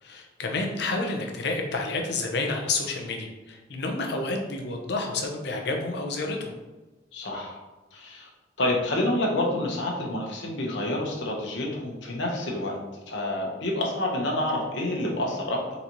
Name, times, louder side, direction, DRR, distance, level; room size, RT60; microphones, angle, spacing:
voice 1, 0.0-6.5, left 3 dB, 65° left, 2 dB, 0.7 m, -29 dB
voice 2, 7.1-7.6 7.9-8.3 8.6-12.8 13.1-15.6, left 1 dB, 80° left, -1 dB, 1.1 m, -28 dB
4.1 x 4.0 x 3.0 m, 1.2 s
head